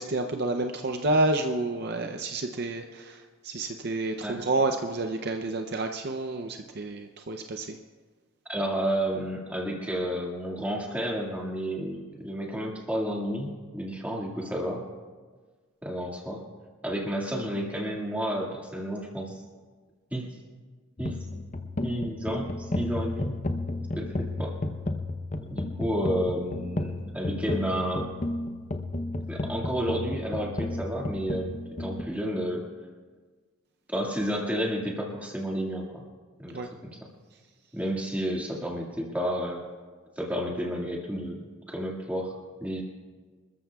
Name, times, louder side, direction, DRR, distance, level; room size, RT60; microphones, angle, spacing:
voice 1, 0.0-7.8 36.5-36.7, right 2 dB, 50° right, 5 dB, 0.6 m, -29 dB
voice 2, 8.5-14.9 15.8-16.4 16.8-19.4 20.1-20.4 21.0-21.2 21.8-23.4 24.0-24.6 25.5-28.1 29.3-32.7 33.9-36.0 36.4-37.1 37.7-39.6 40.2-42.8, equal, 5° right, -2 dB, 2.0 m, -31 dB
sound 1, 21.0-32.0, left 2 dB, 35° left, 0.7 m, -33 dB
27.0 x 14.0 x 2.3 m, 1.5 s
head